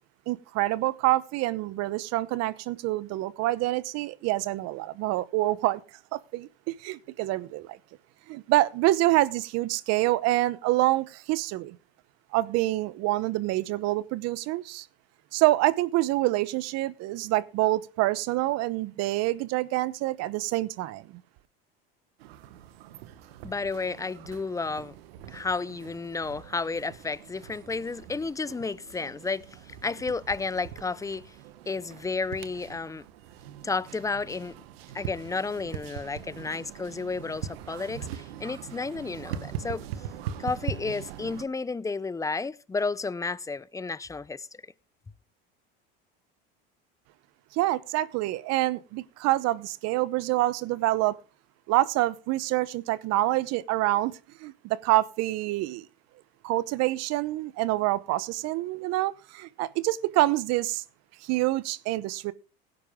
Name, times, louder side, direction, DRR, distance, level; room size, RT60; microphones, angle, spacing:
voice 1, 0.3-5.8 6.1-7.8 8.3-11.8 12.3-14.9 15.3-21.1 47.5-51.2 51.7-54.1 54.4-55.9 56.4-60.8 61.2-62.3, right 17 dB, 60° right, 0.9 m, -26 dB
sound 1, 22.2-41.4, right 9 dB, 85° right, 1.2 m, -41 dB
voice 2, 23.4-25.0 25.3-31.4 31.7-33.1 33.6-34.6 34.9-39.9 40.4-44.5, left 4 dB, 10° left, 0.5 m, -32 dB
17.0 x 10.0 x 3.6 m
supercardioid pair, 100°, 30 cm